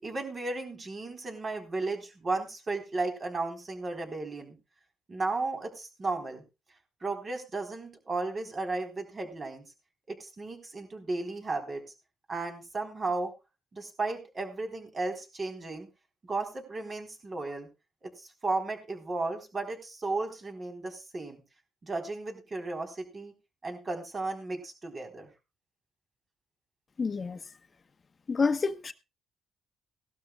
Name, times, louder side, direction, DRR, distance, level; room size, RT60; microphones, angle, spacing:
voice 1, 0.0-4.6 5.1-6.4 7.0-9.7 10.1-11.8 12.3-13.3 13.7-15.9 16.2-17.7 18.0-21.4 21.8-23.3 23.6-25.3, right 3 dB, 35° right, 4.0 m, -34 dB
voice 2, 27.0-27.4 28.3-28.9, left 4 dB, 35° left, 1.2 m, -28 dB
18.5 x 12.5 x 2.4 m
cardioid pair, 90°, 0 cm